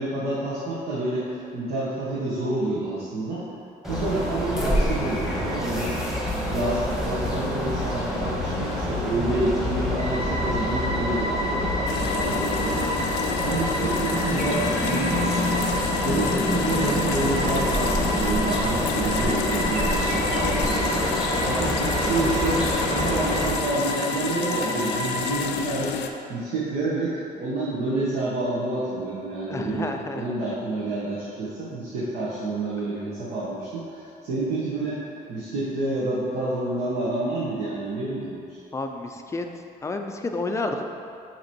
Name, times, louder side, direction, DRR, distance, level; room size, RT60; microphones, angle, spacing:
voice 1, 0.0-3.5 3.9-5.9 6.5-12.9 13.4-15.6 16.0-21.0 21.4-22.7 22.9-25.9 26.3-35.0 35.3-38.6, right 2 dB, 70° right, -8 dB, 1.4 m, -28 dB
sound 1, 3.8-23.5, left 1 dB, 5° right, 1.2 m, -27 dB
sound 2, 10.0-25.3, equal, 35° right, 0.8 m, -31 dB
sound 3, 11.9-26.1, left 7 dB, 85° left, 0.5 m, -30 dB
voice 2, 29.5-30.2 38.7-39.5 39.8-40.8, left 3 dB, 15° left, 4 dB, 0.4 m, -30 dB
7.7 x 3.1 x 4.5 m, 2.6 s
cardioid pair, 110°, 17 cm